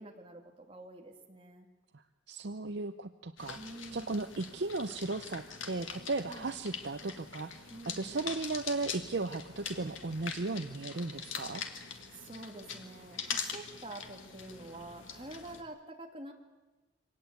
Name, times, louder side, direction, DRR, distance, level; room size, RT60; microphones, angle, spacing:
voice 1, 0.0-1.7 3.5-4.2 6.3-6.5 7.7-8.2 12.1-16.3, right 1 dB, 25° right, 2 dB, 2.5 m, -47 dB
voice 2, 2.3-3.6 3.9-11.6, right 3 dB, 60° right, 9 dB, 0.7 m, -36 dB
sound 1, 3.4-15.6, left 6 dB, 80° left, 2.1 m, -43 dB
24.0 x 18.5 x 8.3 m, 1.1 s
head